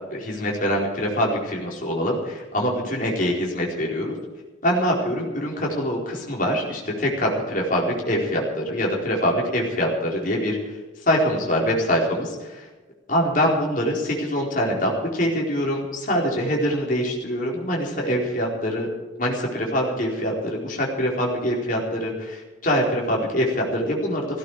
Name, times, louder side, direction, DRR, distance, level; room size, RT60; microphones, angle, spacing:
voice 1, 0.1-4.2 4.6-10.6 11.1-12.6 13.1-18.9 19.2-24.4, equal, 45° left, -2 dB, 4.5 m, -24 dB
17.0 x 16.5 x 5.0 m, 1.2 s
head